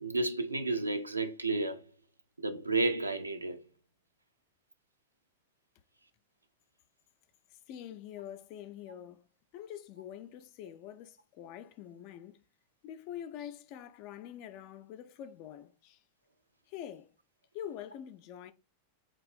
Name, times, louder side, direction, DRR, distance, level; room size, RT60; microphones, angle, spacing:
voice 1, 0.0-1.8 2.4-3.6, right 2 dB, 80° right, 0.4 m, -31 dB
voice 2, 7.7-9.3 9.5-12.4 12.8-16.0 16.7-17.1 17.5-18.5, left 10 dB, 45° left, 0.4 m, -45 dB
3.5 x 2.5 x 3.3 m
figure-of-eight pair, 90°, 0 cm